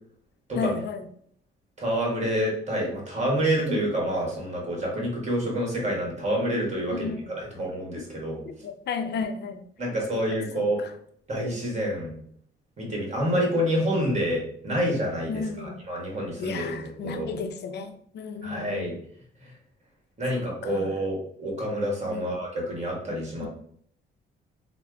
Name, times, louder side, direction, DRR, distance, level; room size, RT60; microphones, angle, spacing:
voice 1, 0.5-1.1 6.9-7.3 8.5-9.6 10.1-10.2 10.5-10.9 15.3-15.7 16.4-18.9 20.6-20.9 22.1-22.4, left 5 dB, 60° left, 8 dB, 0.4 m, -33 dB
voice 2, 1.8-8.4 9.8-10.8 11.3-12.1 12.8-17.3 18.4-18.9 20.2-23.5, equal, 35° right, -2 dB, 1.5 m, -28 dB
3.3 x 2.0 x 3.4 m, 0.64 s
cardioid pair, 90°, 20 cm